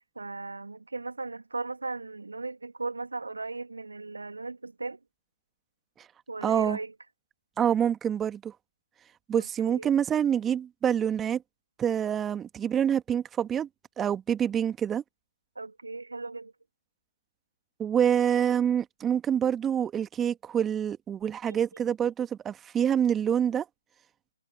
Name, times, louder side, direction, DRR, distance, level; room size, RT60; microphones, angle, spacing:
voice 1, 0.2-5.0 6.3-6.9 9.3-9.9 15.6-16.5 21.5-21.8, right 3 dB, 75° right, 2.2 m, -37 dB
voice 2, 6.4-6.8 7.6-8.5 9.3-11.4 11.8-13.7 14.0-15.0 17.8-23.6, right 9 dB, 10° right, 1.6 m, -26 dB
figure-of-eight pair, 135°, 0 cm